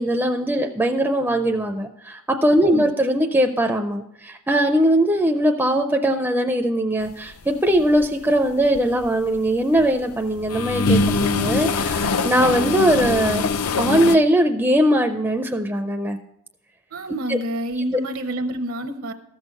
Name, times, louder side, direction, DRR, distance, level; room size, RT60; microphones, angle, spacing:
voice 1, 0.0-13.4 13.8-16.2 17.3-17.4, right 1 dB, 10° right, 4 dB, 0.4 m, -20 dB
voice 2, 2.6-2.9 16.9-19.1, right 1 dB, 75° right, 6 dB, 0.8 m, -28 dB
sound 1, 7.8-8.1 8.5-9.8 10.2-14.2, left 3 dB, 80° left, 0.5 m, -23 dB
14.0 x 6.4 x 5.2 m, 0.79 s
head